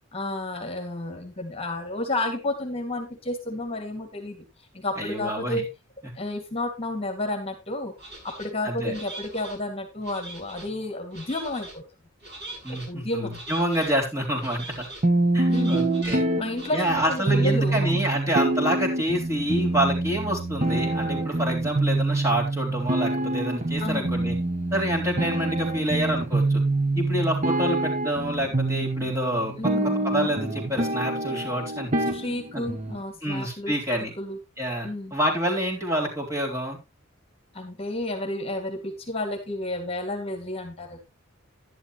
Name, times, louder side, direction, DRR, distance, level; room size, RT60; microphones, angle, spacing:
voice 1, 0.1-4.4 4.7-5.7 6.2-7.9 8.2-11.8 12.7-13.4 15.5-15.8 16.4-18.0 23.8-24.1 25.1-25.4 29.6-30.0 32.1-33.7 34.2-34.4 34.8-35.1 37.5-41.0, left 1 dB, 30° left, 4 dB, 2.3 m, -31 dB
voice 2, 5.0-5.6 8.6-8.9 12.6-14.9 15.3-16.2 16.7-24.4 24.7-26.6 27.0-29.7 30.0-31.9 32.5-32.6 33.2-34.1 34.6-36.8, equal, 15° right, -1 dB, 3.8 m, -27 dB
sound 1, 8.0-8.5 8.9-9.6 10.0-10.7 11.1-11.7 12.2-12.9 13.3-13.9 14.4-15.0 15.5-16.2 16.5-16.7, right 2 dB, 55° right, 7.4 m, -41 dB
sound 2, 15.0-33.0, right 2 dB, 35° right, 1.3 m, -26 dB
11.5 x 11.0 x 3.1 m, 0.24 s
head